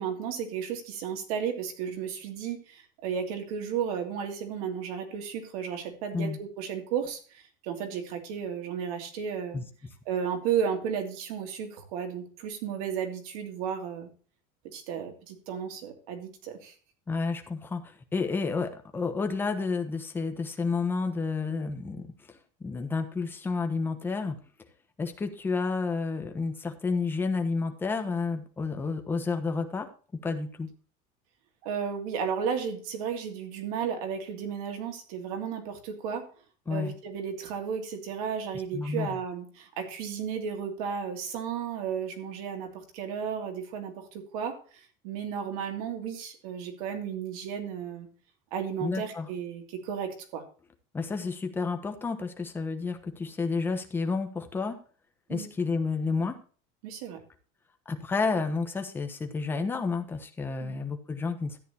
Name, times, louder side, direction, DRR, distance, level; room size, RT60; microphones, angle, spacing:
voice 1, 0.0-9.6 10.1-14.1 14.6-16.7 31.6-36.3 36.7-48.1 48.5-50.4 55.3-55.5 56.8-57.2 60.6-60.8, right 7 dB, 85° right, 5 dB, 2.9 m, -34 dB
voice 2, 17.1-22.1 22.6-24.4 25.0-29.9 30.2-30.7 36.7-36.9 38.7-39.2 48.8-49.3 50.9-54.8 55.3-56.4 57.9-61.6, left 4 dB, 10° left, 5 dB, 1.2 m, -30 dB
13.5 x 9.2 x 2.9 m, 0.40 s
cardioid pair, 175°, 18 cm